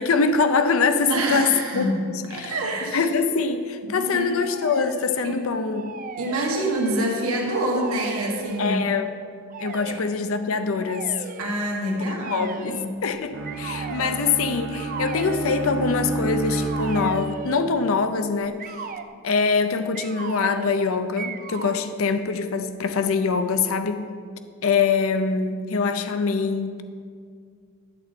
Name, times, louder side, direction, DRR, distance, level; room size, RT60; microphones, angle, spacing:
voice 1, 0.0-1.9 2.3-2.6 2.9-5.9 8.6-9.1 9.6-11.1 12.0-18.6 19.2-24.1 24.6-26.8, left 4 dB, 70° left, 9 dB, 0.6 m, -24 dB
voice 2, 1.1-3.0 3.9-4.3 5.2-5.6 6.2-8.8 9.9-10.0 11.4-12.9, right 1 dB, 90° right, -1 dB, 1.8 m, -26 dB
sound 1, 4.4-5.3 5.7-7.2 7.5-8.8 9.5-10.0 10.8-11.5 12.2-12.9 13.4-14.2 14.7-15.7 16.5-17.7 18.6-19.1 19.9-20.8 21.2-21.8, right 5 dB, 40° right, 0.5 m, -36 dB
Bowed string instrument, 13.3-17.7, right 3 dB, 75° right, 0.9 m, -30 dB
11.5 x 4.2 x 8.0 m, 2.2 s
head